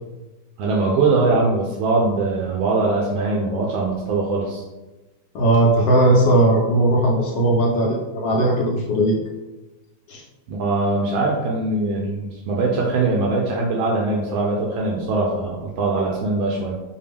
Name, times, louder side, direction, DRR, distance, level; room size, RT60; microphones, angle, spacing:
voice 1, 0.6-4.6 10.5-16.8, right 3 dB, 80° right, -2 dB, 1.4 m, -22 dB
voice 2, 5.3-9.1 10.1-10.2, right 1 dB, 70° left, -1 dB, 1.2 m, -18 dB
5.1 x 2.3 x 3.4 m, 1.1 s
omnidirectional pair, 2.2 m